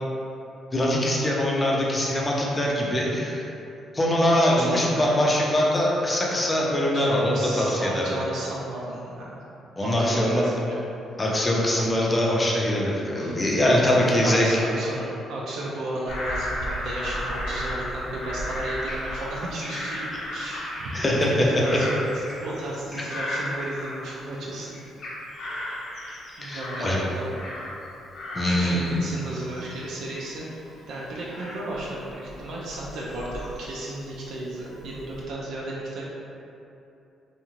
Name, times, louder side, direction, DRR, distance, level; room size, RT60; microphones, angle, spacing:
voice 1, 0.7-3.4 3.9-8.0 9.8-10.4 11.2-14.5 20.1-20.2 20.9-21.8 26.4-27.0 28.3-29.0, left 1 dB, 20° left, -3 dB, 0.5 m, -23 dB
voice 2, 4.7-5.2 6.9-9.4 9.8-10.8 13.2-13.8 14.2-20.0 20.3-24.7 26.4-27.3 28.4-30.5 30.9-36.0, right 1 dB, 80° right, -5 dB, 0.4 m, -34 dB
Bird vocalization bird call bird song / Crow, 16.1-24.4 24.7-27.9 28.1-34.2 34.7-35.2, left 1 dB, 70° left, 0.6 m, -35 dB
2.6 x 2.3 x 3.0 m, 2.8 s
cardioid pair, 90°, 0 cm